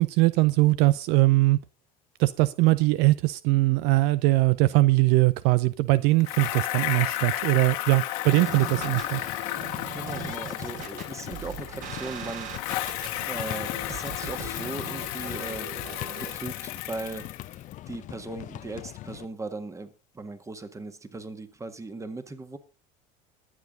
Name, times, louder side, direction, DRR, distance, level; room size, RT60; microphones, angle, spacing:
voice 1, 0.0-1.6 2.2-9.2, right 19 dB, 65° right, 0.6 m, -21 dB
Bicycle, 6.2-12.1 12.5-17.7, left 15 dB, 80° left, 1.7 m, -33 dB
sound 1, 8.3-16.3, right 6 dB, 45° right, 3.5 m, -40 dB
sound 2, 8.9-19.3, left 14 dB, 45° left, 0.6 m, -41 dB
voice 2, 9.9-12.5 13.2-15.7 16.2-17.3 17.6-22.6, right 3 dB, 15° right, 1.7 m, -38 dB
21.5 x 7.5 x 3.9 m
supercardioid pair, 100°, 18 cm